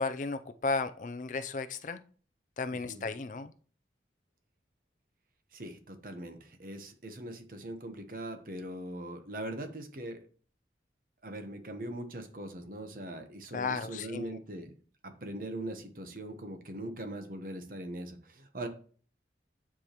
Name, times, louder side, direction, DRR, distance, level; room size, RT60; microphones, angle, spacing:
voice 1, 0.0-2.0 2.6-3.5 13.5-14.4, left 4 dB, 45° left, 11 dB, 0.4 m, -34 dB
voice 2, 2.7-3.0 5.5-10.2 11.2-14.7 15.0-18.7, right 1 dB, 50° right, 7 dB, 1.0 m, -41 dB
9.3 x 4.8 x 3.0 m, 0.43 s
head